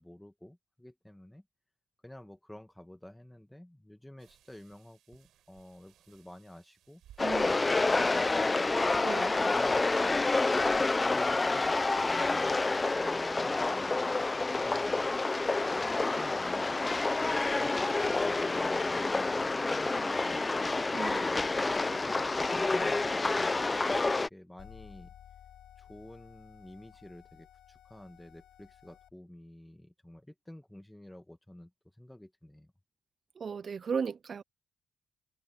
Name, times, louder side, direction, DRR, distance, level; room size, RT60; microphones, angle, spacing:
voice 1, 0.0-1.4 2.0-7.0 7.5-8.9 9.4-10.3 10.7-15.1 15.7-17.1 17.4-20.8 21.6-23.2 23.7-25.1 25.8-31.7 32.0-32.7, left 1 dB, 5° left, 2.0 m, -50 dB
sound 1, 4.2-13.0, right 12 dB, 80° right, 7.5 m, -61 dB
sound 2, 7.2-24.3, left 3 dB, 25° left, 0.5 m, -28 dB
voice 2, 7.2-7.5 9.0-9.4 20.9-21.3 33.4-34.4, right 6 dB, 45° right, 0.4 m, -35 dB
sound 3, 24.6-29.1, left 10 dB, 75° left, 4.0 m, -55 dB
cardioid pair, 85°, 0 cm